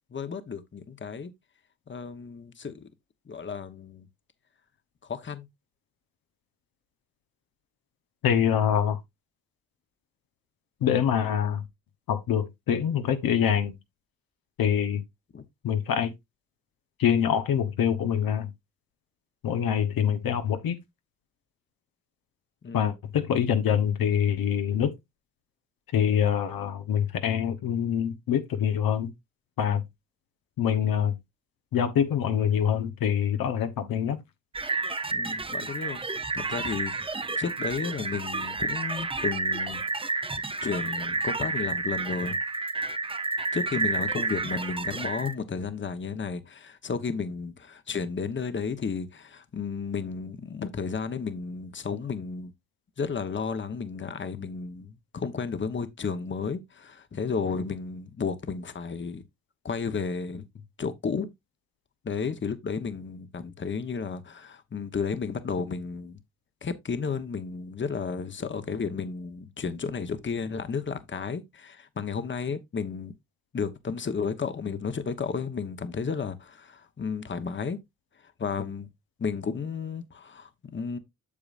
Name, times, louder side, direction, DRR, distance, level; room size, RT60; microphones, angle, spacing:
voice 1, 0.1-1.3 1.9-2.9 3.3-4.1 5.0-5.5 15.3-15.4 22.6-22.9 35.1-40.2 40.6-42.4 43.5-52.5 53.0-59.2 59.6-60.4 60.8-61.3 62.0-66.2 66.6-73.1 73.5-77.8 78.2-78.9 79.2-81.0, left 5 dB, 35° left, 1.1 m, -33 dB
voice 2, 8.2-9.0 10.8-11.6 12.1-13.8 14.6-15.0 15.6-16.1 17.0-18.5 19.4-20.8 22.7-24.9 25.9-29.1 29.6-29.8 30.6-31.2 31.7-34.2, left 8 dB, 80° left, 1.1 m, -25 dB
sound 1, 34.5-45.3, right 3 dB, 15° right, 0.7 m, -30 dB
8.6 x 7.0 x 2.5 m
cardioid pair, 85°, 35 cm